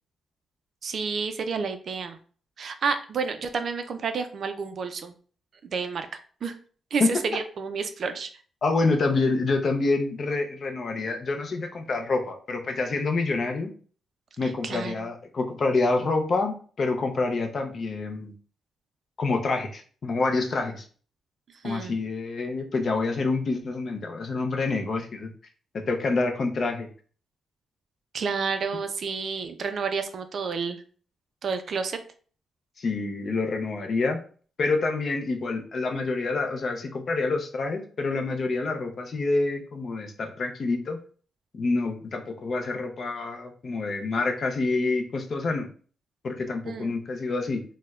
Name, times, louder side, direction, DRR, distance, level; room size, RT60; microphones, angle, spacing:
voice 1, 0.8-2.2 2.6-5.1 5.7-6.1 6.4-6.5 6.9-8.3 14.4-14.9 21.6-21.9 28.1-30.8 31.4-32.0 46.6-46.9, right 5 dB, 50° right, 8 dB, 0.3 m, -30 dB
voice 2, 8.6-13.7 14.4-18.3 19.2-20.9 21.6-25.3 25.7-26.9 32.8-34.2 34.6-41.0 41.5-45.7 46.2-47.6, left 3 dB, 40° left, 5 dB, 0.5 m, -27 dB
4.3 x 2.1 x 2.3 m, 0.42 s
cardioid pair, 145°, 0 cm